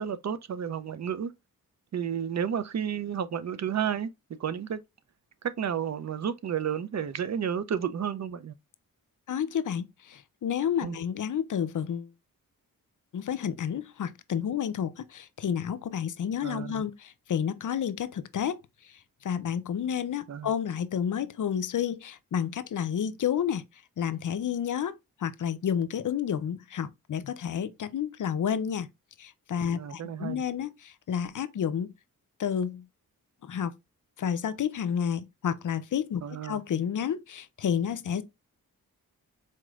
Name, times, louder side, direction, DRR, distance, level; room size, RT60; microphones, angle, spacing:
voice 1, 0.0-1.3 1.9-4.1 4.4-4.8 5.4-8.5 10.8-11.0 16.4-16.7 20.3-20.5 29.7-30.4 36.2-36.6, right 8 dB, 50° right, 0.4 m, -31 dB
voice 2, 9.3-12.1 13.1-18.6 19.2-23.6 24.0-24.9 25.2-28.9 29.2-31.9 32.4-32.9 33.4-33.7 34.2-38.2, left 8 dB, 60° left, 0.5 m, -30 dB
4.2 x 3.1 x 2.3 m
cardioid pair, 65°, 36 cm